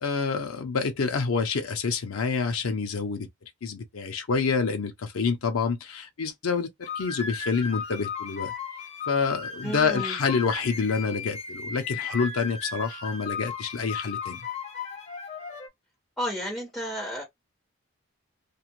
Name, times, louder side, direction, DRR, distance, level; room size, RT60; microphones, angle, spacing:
voice 1, 0.0-3.3 3.6-8.5 9.1-14.4, left 5 dB, 90° left, 0.6 m, -27 dB
sound 1, 6.8-15.7, left 6 dB, 30° left, 0.7 m, -36 dB
voice 2, 9.6-10.2 16.2-17.2, equal, ahead, 1.4 m, -32 dB
2.4 x 2.4 x 2.9 m
head